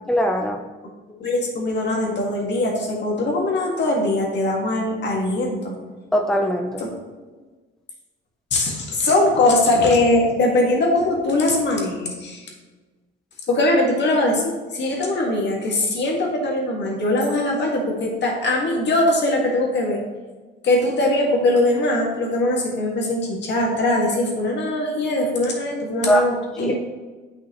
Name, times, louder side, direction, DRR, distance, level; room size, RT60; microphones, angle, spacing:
voice 1, 0.1-0.6 6.1-6.8 26.1-26.3 26.6-26.8, equal, ahead, 3 dB, 0.6 m, -20 dB
voice 2, 1.2-5.7 6.8-6.9 8.5-12.5 13.5-20.0 20.6-26.7, left 2 dB, 60° left, -1 dB, 2.0 m, -21 dB
8.5 x 5.6 x 3.1 m, 1.3 s
cardioid pair, 90°, 20 cm